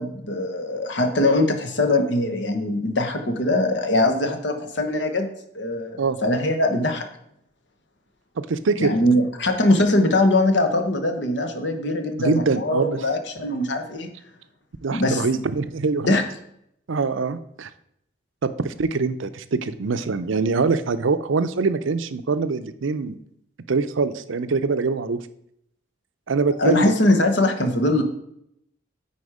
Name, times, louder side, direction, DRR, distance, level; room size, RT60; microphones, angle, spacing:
voice 1, 0.0-5.3 5.5-7.1 8.8-14.1 14.9-15.3 16.0-16.2 26.6-28.0, left 1 dB, 65° left, 6 dB, 1.1 m, -21 dB
voice 2, 8.4-8.9 12.2-13.0 13.5-13.6 14.8-16.2 16.9-17.7 18.4-23.2 23.7-25.2 26.3-26.9, right 4 dB, 80° right, 12 dB, 0.6 m, -24 dB
9.4 x 4.4 x 4.9 m, 0.73 s
head